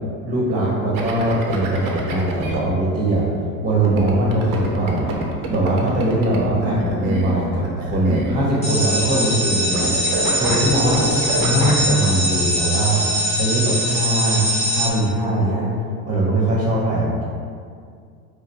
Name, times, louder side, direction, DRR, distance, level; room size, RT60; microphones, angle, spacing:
voice 1, 0.2-3.3 3.6-5.1 5.5-9.9 10.4-11.0 11.3-13.0 13.4-15.7 16.1-17.2, right 1 dB, 20° right, -5 dB, 1.2 m, -21 dB
sound 1, 0.9-2.6 3.8-8.9 9.1-9.5 9.7-11.9, right 2 dB, 50° right, 0.9 m, -28 dB
sound 2, 8.6-14.9, equal, 15° left, 1.0 m, -22 dB
5.1 x 2.3 x 4.2 m, 2.2 s
supercardioid pair, 90°, 42 cm